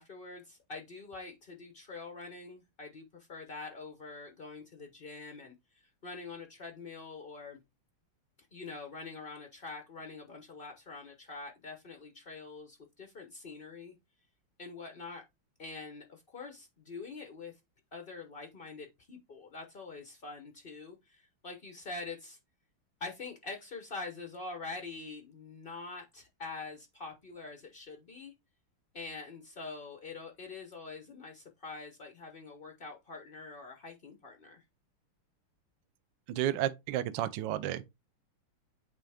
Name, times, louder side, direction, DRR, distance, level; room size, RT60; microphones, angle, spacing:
voice 1, 0.0-5.5 6.0-7.6 8.5-14.0 14.6-15.2 15.6-17.6 17.9-22.4 23.0-28.3 28.9-34.6, left 3 dB, 60° left, 0.5 m, -45 dB
voice 2, 36.3-37.9, right 12 dB, 70° right, 1.2 m, -32 dB
8.9 x 3.4 x 3.4 m
omnidirectional pair, 2.4 m